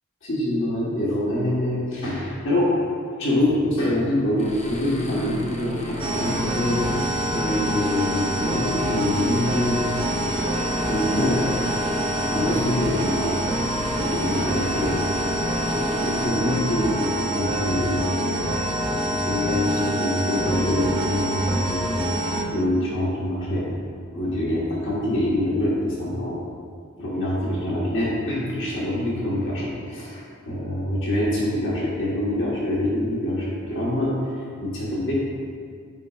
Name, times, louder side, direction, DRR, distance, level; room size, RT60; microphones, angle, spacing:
voice 1, 0.2-2.8 3.2-6.9 7.3-9.9 10.9-11.5 12.3-15.0 15.8-18.2 19.0-21.9 22.5-23.7 24.1-26.4 27.0-35.1, left 1 dB, 60° left, -6 dB, 1.2 m, -25 dB
sound 1, 4.4-16.2, equal, 35° left, 0.7 m, -34 dB
sound 2, 6.0-22.4, right 1 dB, 25° right, 0.6 m, -26 dB
9.0 x 4.9 x 2.3 m, 2.2 s
head